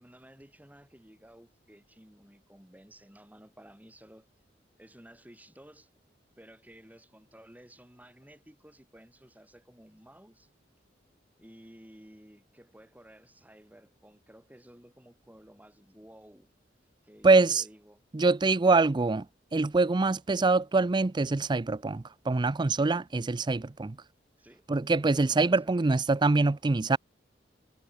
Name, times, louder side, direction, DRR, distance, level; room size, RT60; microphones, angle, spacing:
voice 1, 0.0-4.3 4.8-5.9 6.4-10.5 11.4-16.5 17.0-18.0 24.4-24.6 25.0-26.0, equal, 10° right, 6.1 m, -54 dB
voice 2, 17.2-17.6 18.1-19.2 19.5-24.0 24.7-27.0, right 3 dB, 25° right, 0.5 m, -24 dB
head